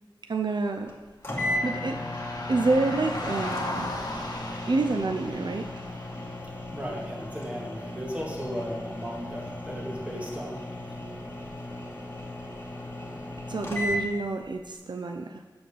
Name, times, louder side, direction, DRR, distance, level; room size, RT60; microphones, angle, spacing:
voice 1, 0.2-1.0 1.3-2.0 2.5-4.0 4.7-5.7 13.5-15.4, right 3 dB, 65° right, 4 dB, 0.4 m, -28 dB
sound 1, 0.9-1.0 1.2-14.0, left 1 dB, 30° left, 1.9 m, -36 dB
sound 2, 1.2-6.4, left 1 dB, 55° left, 1.3 m, -37 dB
voice 2, 6.7-11.0 11.6-11.7, equal, 15° right, -3 dB, 2.0 m, -36 dB
7.7 x 4.2 x 6.7 m, 1.4 s
wide cardioid pair, 45°, 8 cm